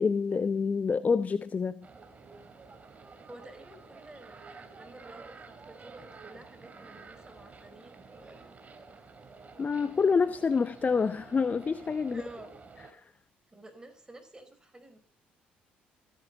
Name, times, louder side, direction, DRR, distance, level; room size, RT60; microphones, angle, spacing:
voice 1, 0.0-1.9 9.6-12.2 12.9-13.1, left 5 dB, 30° left, 0.8 m, -27 dB
sound 1, 1.8-12.9, right 4 dB, 30° right, 3.3 m, -50 dB
voice 2, 3.3-8.6 12.0-12.5 13.5-15.0, right 2 dB, 15° right, 5.1 m, -51 dB
28.0 x 10.0 x 3.7 m
figure-of-eight pair, 50°, 5 cm